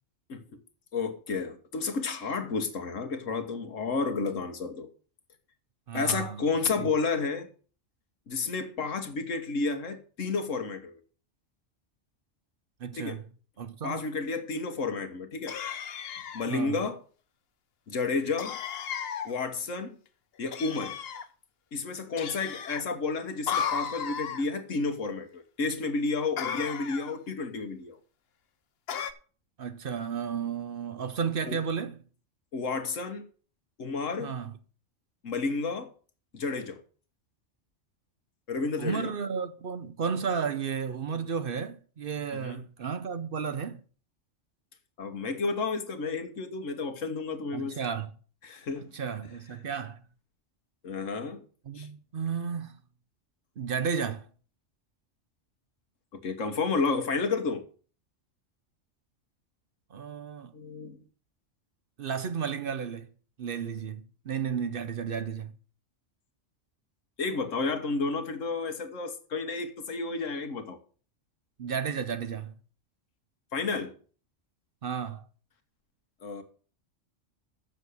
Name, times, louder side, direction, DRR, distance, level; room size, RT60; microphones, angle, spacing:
voice 1, 0.9-4.9 5.9-7.5 8.3-11.0 13.0-13.2 13.8-15.6 16.3-17.0 17.9-18.6 19.2-20.0 20.4-21.0 21.7-28.0 31.5-31.6 32.5-33.3 33.8-34.3 35.2-35.9 36.3-36.8 38.5-39.1 42.3-42.6 45.0-47.8 48.4-48.9 50.8-51.4 51.7-51.9 56.1-57.6 60.5-61.0 67.2-70.8 73.5-73.9 76.2-76.4, left 4 dB, 85° left, 1.6 m, -31 dB
voice 2, 5.9-6.5 6.8-6.9 12.8-13.2 13.6-14.0 16.5-16.8 29.6-32.0 34.2-34.5 38.8-43.8 47.5-48.1 48.9-50.0 51.7-52.7 53.6-54.3 59.9-60.5 62.0-63.1 63.4-65.5 71.6-72.5 74.8-75.3, right 6 dB, 55° right, 0.8 m, -33 dB
sound 1, 15.5-16.5 18.4-19.3 20.5-21.3 22.2-22.8 23.5-24.4 26.4-27.2 28.9-29.1, left 7 dB, 55° left, 0.9 m, -34 dB
7.1 x 6.8 x 8.1 m
omnidirectional pair, 1.3 m